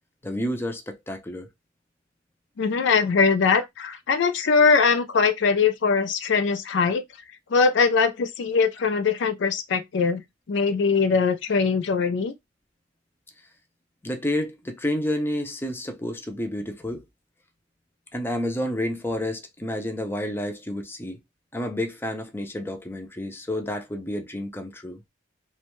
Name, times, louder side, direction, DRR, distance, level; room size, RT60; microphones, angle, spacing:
voice 1, 0.2-1.5 14.0-17.0 18.1-21.2 21.5-25.0, left 1 dB, 10° left, 0.5 m, -30 dB
voice 2, 2.6-7.0 7.5-10.2 10.5-12.3, left 5 dB, 70° left, 0.4 m, -21 dB
2.6 x 2.2 x 3.0 m
head